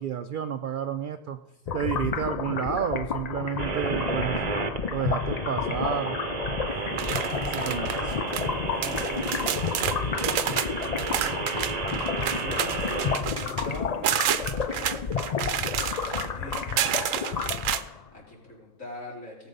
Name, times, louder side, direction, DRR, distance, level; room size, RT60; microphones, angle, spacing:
voice 1, 0.0-1.4 1.7-4.4 4.9-6.2 7.5-7.9, right 8 dB, 60° right, 9 dB, 0.5 m, -30 dB
sound 1, 1.7-18.1, left 6 dB, 55° left, 0.4 m, -31 dB
sound 2, 3.6-13.2, right 4 dB, 35° right, 0.8 m, -32 dB
sound 3, 6.9-8.5 8.8-17.8, right 10 dB, 85° right, 1.0 m, -30 dB
voice 2, 7.1-8.4 8.8-9.9 10.2-19.5, left 1 dB, 80° left, -4 dB, 4.3 m, -44 dB
17.5 x 7.1 x 5.4 m, 0.94 s
omnidirectional pair, 1.3 m